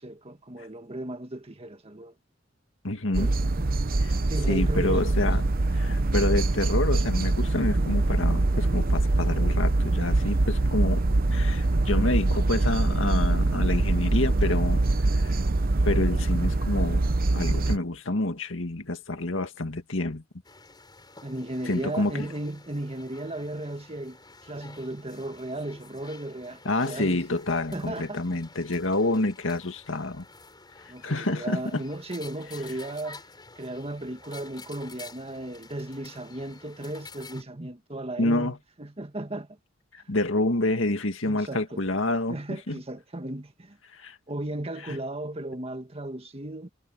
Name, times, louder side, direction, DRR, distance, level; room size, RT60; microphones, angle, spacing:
voice 1, 0.0-2.1 3.2-3.3 4.3-5.3 21.2-27.2 27.7-28.4 30.9-33.2 33.6-39.6 41.2-41.8 42.3-43.8 44.3-46.7, right 1 dB, 30° right, 1.8 m, -35 dB
voice 2, 2.8-3.3 4.0-4.2 4.5-5.4 5.7-11.0 11.3-14.8 15.1-15.3 15.8-17.1 17.3-20.2 21.7-22.3 26.6-30.2 30.8-31.8 38.2-38.6 39.9-42.8 43.9-44.2 44.8-45.0, left 2 dB, 75° left, 2.1 m, -28 dB
sound 1, 3.1-17.8, right 2 dB, 50° right, 0.8 m, -24 dB
sound 2, 20.4-37.4, left 3 dB, 20° left, 4.9 m, -49 dB
head